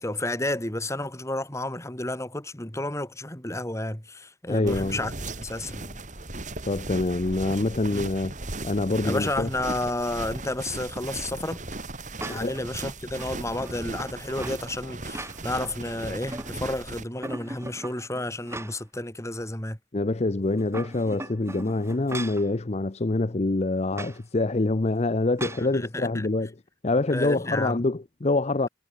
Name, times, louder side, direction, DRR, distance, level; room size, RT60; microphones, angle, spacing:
voice 1, 0.0-5.1 5.4-6.0 7.9-8.1 9.0-11.6 12.2-19.8 25.6-26.3 27.1-27.9, left 1 dB, 15° left, 3.5 m, -31 dB
voice 2, 4.5-5.0 6.6-8.3 8.6-9.5 12.3-12.6 19.9-26.5 26.8-28.7, left 2 dB, 40° left, 0.7 m, -25 dB
sound 1, 4.7-17.0, right 2 dB, 45° right, 5.6 m, -37 dB
sound 2, 12.2-12.6 13.1-14.6 15.0-15.7 16.1-16.8 17.2-19.0 19.4-19.5 20.5-22.5 23.9-24.2 25.4-25.7, right 2 dB, 15° right, 3.2 m, -39 dB
head